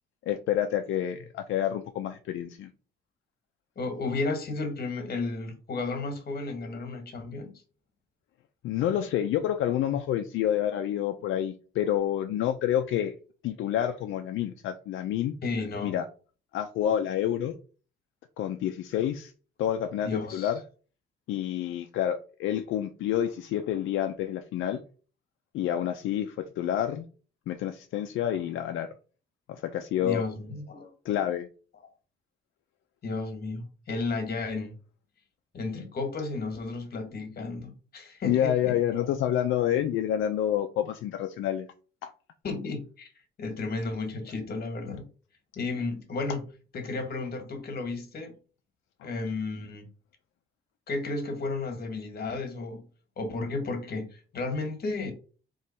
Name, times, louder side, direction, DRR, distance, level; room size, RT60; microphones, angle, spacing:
voice 1, 0.3-2.7 8.6-13.1 13.4-15.3 15.8-16.0 16.5-17.6 18.4-19.3 19.6-20.6 21.3-24.8 25.5-27.1 27.5-28.9 29.5-30.2 31.0-31.5 38.2-41.7 42.0-42.1, left 11 dB, 80° left, 0.5 m, -28 dB
voice 2, 3.7-7.5 15.4-16.0 20.0-20.5 30.0-30.9 33.0-34.7 35.5-39.1 42.4-43.1 43.4-45.1 45.6-46.4 46.7-48.3 49.0-49.9 50.9-52.9 53.2-55.1, left 3 dB, 50° left, 1.5 m, -33 dB
3.6 x 3.1 x 4.3 m
cardioid pair, 90°, 20 cm